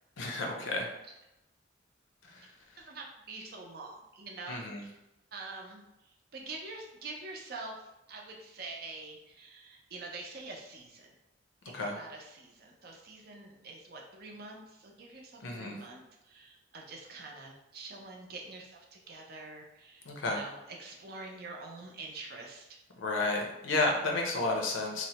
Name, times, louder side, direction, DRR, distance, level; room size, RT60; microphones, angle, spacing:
voice 1, 0.2-0.9 4.5-4.8 11.7-12.0 15.4-15.8 20.1-20.4 23.0-25.1, left 2 dB, 75° left, 1 dB, 0.6 m, -31 dB
voice 2, 2.8-5.0 5.3-5.8 6.3-7.8 8.1-11.1 11.7-22.6, right 3 dB, 50° right, 0 dB, 0.5 m, -46 dB
3.0 x 2.1 x 2.8 m, 0.91 s
head